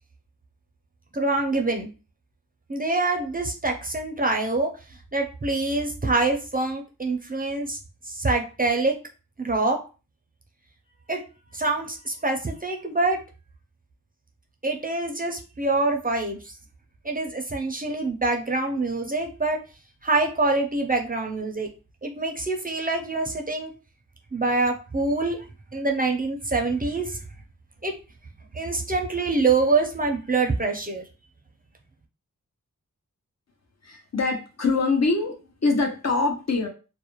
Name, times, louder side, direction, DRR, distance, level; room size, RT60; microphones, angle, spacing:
voice 1, 1.1-1.9 2.7-4.7 5.1-7.8 8.1-9.0 9.4-9.8 11.1-11.2 11.5-13.2 14.6-16.5 17.0-19.6 20.0-21.7 22.0-23.7 24.3-25.5 25.7-27.2 27.8-27.9 28.5-31.0, right 3 dB, 25° right, 2 dB, 0.5 m, -25 dB
voice 2, 33.8-36.7, left 3 dB, 50° left, 3 dB, 0.6 m, -24 dB
2.4 x 2.1 x 2.9 m, 0.34 s
wide cardioid pair, 50°, 34 cm